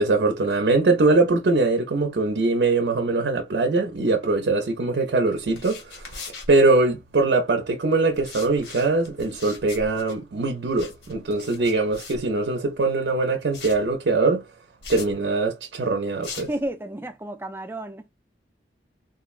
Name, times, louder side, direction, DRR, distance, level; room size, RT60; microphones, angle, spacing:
voice 1, 0.0-6.2 6.5-14.4 14.9-16.5, right 3 dB, 70° right, 0.5 m, -22 dB
sound 1, 5.4-7.2 8.1-12.8 13.5-13.9 14.8-15.1 16.2-16.7, left 4 dB, 65° left, 1.1 m, -41 dB
voice 2, 16.3-18.1, right 1 dB, 10° right, 0.4 m, -32 dB
3.8 x 2.0 x 2.4 m
head